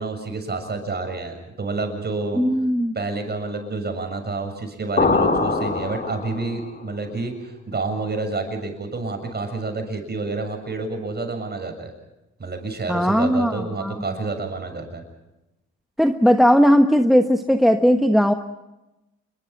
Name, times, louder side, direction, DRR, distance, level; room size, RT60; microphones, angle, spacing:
voice 1, 0.0-2.4 2.9-11.9 12.4-15.0, right 3 dB, 35° right, 6 dB, 7.3 m, -29 dB
voice 2, 2.4-2.9 12.9-14.0 16.0-18.3, equal, ahead, 5 dB, 1.2 m, -17 dB
sound 1, 5.0-6.7, left 3 dB, 30° left, 4.0 m, -22 dB
28.0 x 23.0 x 6.0 m, 0.95 s
cardioid pair, 90°, 30 cm